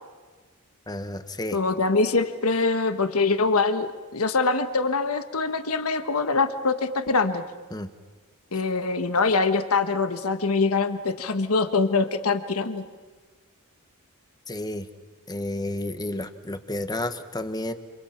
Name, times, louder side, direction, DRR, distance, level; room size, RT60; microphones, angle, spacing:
voice 1, 0.9-1.6 7.7-7.9 14.5-14.9 15.3-17.7, left 1 dB, 20° left, 10 dB, 1.3 m, -31 dB
voice 2, 1.5-3.9 4.1-7.4 8.5-12.8, left 3 dB, 70° left, 10 dB, 1.4 m, -24 dB
29.5 x 27.0 x 5.9 m, 1.4 s
head